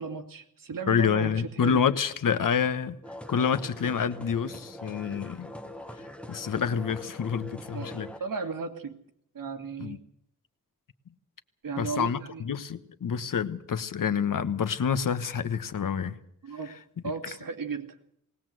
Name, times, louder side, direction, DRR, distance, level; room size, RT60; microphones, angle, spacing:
voice 1, 0.0-1.8 7.7-7.9 8.2-9.0 9.3-10.0 11.6-12.4 16.4-16.7 17.0-18.0, right 5 dB, 85° right, 6 dB, 2.1 m, -35 dB
voice 2, 0.9-3.0 3.3-5.5 6.3-8.1 9.8-10.0 11.8-16.2, left 7 dB, 75° left, 11 dB, 1.3 m, -27 dB
sound 1, 3.0-8.2, left 1 dB, 5° left, 1.1 m, -42 dB
20.0 x 18.5 x 7.8 m, 0.71 s
wide cardioid pair, 165°, 32 cm